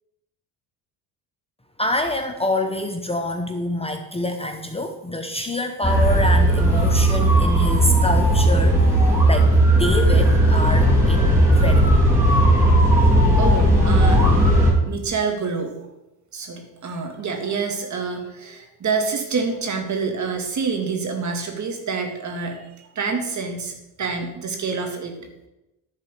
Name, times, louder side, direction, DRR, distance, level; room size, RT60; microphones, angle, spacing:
voice 1, 1.8-12.0, left 1 dB, 15° left, 5 dB, 0.8 m, -26 dB
sound 1, 5.8-14.7, right 1 dB, 5° right, 2.8 m, -16 dB
voice 2, 12.9-14.2 14.9-15.7 16.3-25.5, right 5 dB, 40° right, 4 dB, 1.9 m, -27 dB
10.5 x 4.1 x 6.7 m, 0.94 s
supercardioid pair, 85°, 42 cm